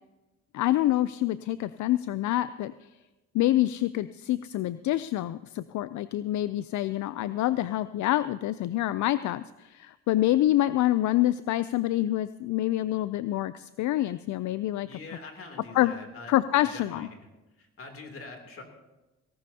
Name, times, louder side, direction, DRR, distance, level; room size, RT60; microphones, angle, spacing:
voice 1, 0.5-2.7 3.3-14.9 15.7-15.9 16.3-17.1, left 14 dB, 70° left, 14 dB, 0.5 m, -26 dB
voice 2, 14.9-16.3 16.6-17.1 17.6-18.6, left 3 dB, 45° left, 3 dB, 3.0 m, -44 dB
18.0 x 17.5 x 2.8 m, 1.1 s
cardioid pair, 90°, 30 cm